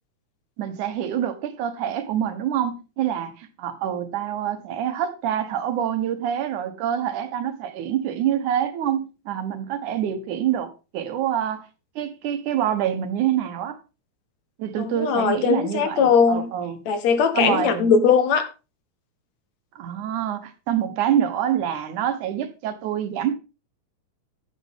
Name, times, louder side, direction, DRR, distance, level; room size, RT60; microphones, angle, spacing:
voice 1, 0.6-11.7 12.0-13.8 14.6-16.8 17.3-17.9 19.8-23.4, right 10 dB, 80° right, 2.6 m, -26 dB
voice 2, 14.8-16.5 16.9-18.5, left 6 dB, 65° left, 2.4 m, -19 dB
10.5 x 9.8 x 3.6 m
omnidirectional pair, 3.5 m